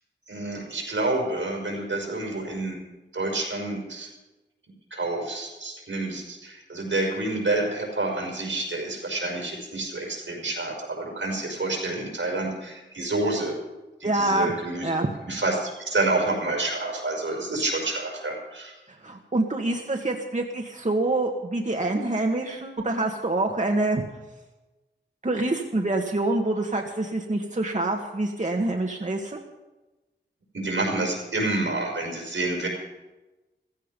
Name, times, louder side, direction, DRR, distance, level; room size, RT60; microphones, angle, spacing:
voice 1, 0.3-2.8 3.1-4.1 4.9-13.6 14.0-14.9 15.3-18.7 30.5-32.7, right 2 dB, 85° right, -1 dB, 5.3 m, -28 dB
voice 2, 14.0-14.5 14.8-15.1 19.0-24.0 25.2-29.4, right 2 dB, 40° right, 1 dB, 1.6 m, -26 dB
15.5 x 15.0 x 5.4 m, 1.1 s
wide cardioid pair, 50°, 19 cm